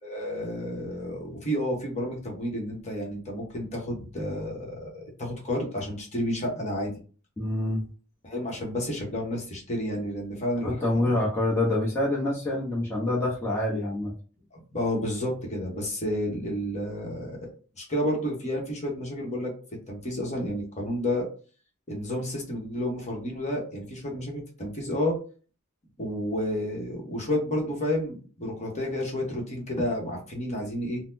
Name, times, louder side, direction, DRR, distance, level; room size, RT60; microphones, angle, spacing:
voice 1, 0.0-7.0 8.2-11.2 14.7-17.4 17.8-19.5 19.9-21.3 21.9-25.2 26.0-31.0, left 1 dB, 30° left, -1 dB, 1.1 m, -31 dB
voice 2, 7.4-7.8 10.6-14.1, left 1 dB, 10° left, -6 dB, 0.9 m, -26 dB
4.0 x 2.1 x 2.7 m, 0.38 s
head